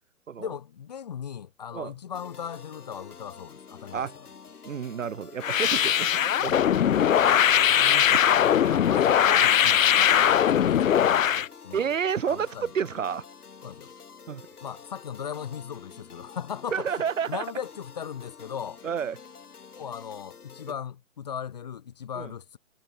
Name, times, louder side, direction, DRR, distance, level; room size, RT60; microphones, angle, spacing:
voice 1, 0.4-4.1 6.4-6.7 8.0-11.9 12.3-12.7 13.6-13.9 14.6-18.8 19.8-22.6, left 8 dB, 30° left, 1.3 m, -38 dB
sound 1, 2.1-20.7, left 6 dB, 85° left, 4.4 m, -48 dB
voice 2, 4.6-6.6 7.5-8.7 11.7-13.2 14.3-14.5 16.7-17.4 18.8-19.2 22.1-22.3, right 7 dB, 60° right, 1.8 m, -31 dB
sound 2, 5.4-11.5, left 9 dB, 60° left, 0.7 m, -21 dB
hypercardioid pair, 175°, 44 cm